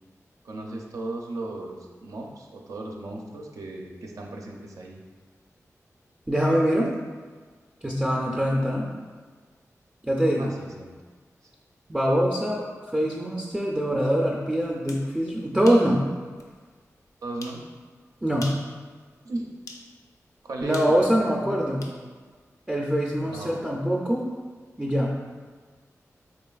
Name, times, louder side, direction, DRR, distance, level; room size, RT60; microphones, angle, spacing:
voice 1, 0.4-5.0 10.4-10.9 17.2-17.6 19.2-19.5 20.4-21.1 23.2-23.6, right 2 dB, 80° right, 1 dB, 0.4 m, -36 dB
voice 2, 6.3-6.9 7.8-8.9 10.0-10.5 11.9-12.7 12.9-16.0 18.2-18.5 20.6-21.8 22.7-24.3 24.8-25.1, equal, 15° right, -3 dB, 0.4 m, -23 dB
sound 1, 14.9-15.1 15.7-15.9 16.4-16.5 17.4-17.6 18.3-18.7 19.7-19.9 20.7-22.0, left 2 dB, 80° left, 0.4 m, -42 dB
3.8 x 3.1 x 2.3 m, 1.5 s
wide cardioid pair, 80°, 6 cm